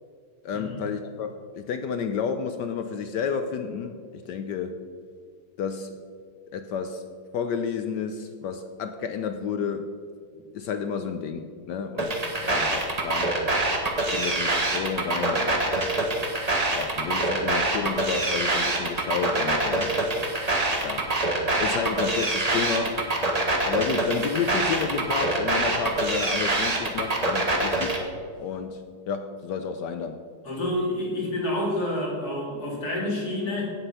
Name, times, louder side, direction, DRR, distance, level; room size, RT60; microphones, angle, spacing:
voice 1, 0.4-4.8 5.6-5.9 6.5-7.0 7.3-9.9 10.5-12.1 12.4-13.3 14.1-15.7 16.8-19.9 20.8-21.1 21.6-23.0 23.6-28.0 28.4-28.8 29.1-30.2, left 6 dB, 70° left, 8 dB, 1.1 m, -30 dB
sound 1, 12.0-28.0, right 2 dB, 20° right, 1.2 m, -25 dB
voice 2, 30.4-33.7, left 1 dB, 50° left, -3 dB, 3.2 m, -28 dB
17.0 x 6.0 x 5.7 m, 2.2 s
omnidirectional pair, 2.2 m